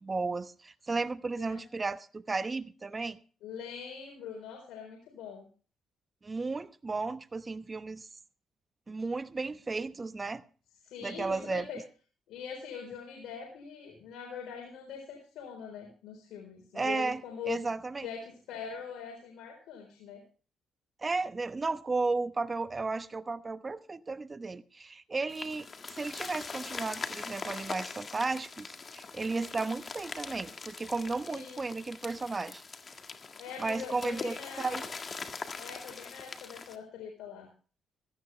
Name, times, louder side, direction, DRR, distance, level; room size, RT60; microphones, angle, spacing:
voice 1, 0.0-3.2 6.2-8.1 8.9-10.4 11.0-11.6 16.7-17.2 17.5-18.1 21.0-25.7 25.9-32.6 33.6-34.9, right 3 dB, 25° right, 0.9 m, -34 dB
voice 2, 3.4-5.4 10.8-11.8 12.3-17.6 18.0-20.2 31.3-31.7 33.4-34.8 35.6-37.5, left 7 dB, 85° left, 4.1 m, -43 dB
sound 1, 25.3-36.8, left 4 dB, 40° left, 1.7 m, -42 dB
16.5 x 14.0 x 3.3 m
cardioid pair, 90°, 0 cm